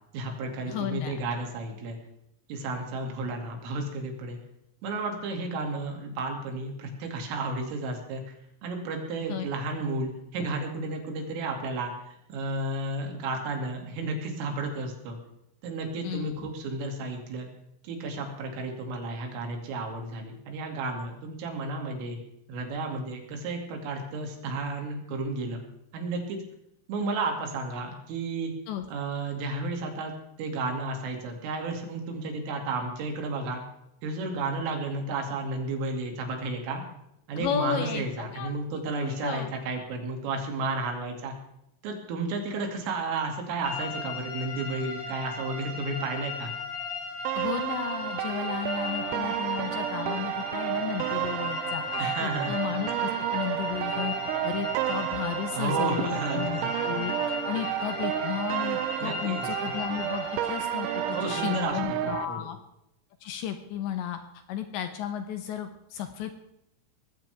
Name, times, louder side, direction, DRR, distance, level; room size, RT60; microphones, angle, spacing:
voice 1, 0.1-2.0 2.5-4.4 4.8-8.4 8.6-15.2 15.6-17.5 17.8-22.2 22.5-25.6 25.9-26.4 26.9-28.5 28.9-30.1 30.4-33.6 34.0-36.8 37.3-41.4 41.8-46.5 51.9-52.6 55.5-56.7 59.0-59.5 61.1-62.5, right 3 dB, 75° right, 3 dB, 5.0 m, -32 dB
voice 2, 0.7-1.2 9.3-9.4 16.0-16.5 28.7-28.8 37.4-38.6 39.0-39.6 47.3-54.1 54.4-62.6 63.2-64.2 64.5-66.4, left 10 dB, 75° left, 7 dB, 2.9 m, -34 dB
sound 1, 43.6-61.6, left 3 dB, 40° left, 8.2 m, -37 dB
sound 2, 47.3-62.3, right 13 dB, 90° right, 3.4 m, -31 dB
19.5 x 15.5 x 3.5 m, 0.81 s
omnidirectional pair, 5.9 m